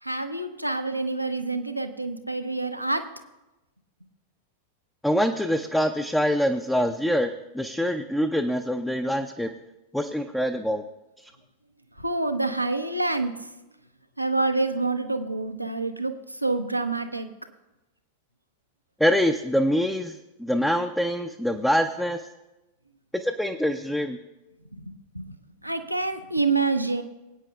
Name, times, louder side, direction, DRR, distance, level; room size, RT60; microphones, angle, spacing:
voice 1, 0.0-3.1 12.0-13.5 14.2-17.3 24.7-25.4 25.6-27.0, right 3 dB, 85° right, 8 dB, 0.7 m, -27 dB
voice 2, 5.0-9.5 9.9-10.8 19.0-22.2 23.1-24.2, equal, 5° left, 6 dB, 0.5 m, -25 dB
22.0 x 9.0 x 2.3 m, 1.0 s
figure-of-eight pair, 90°, 0 cm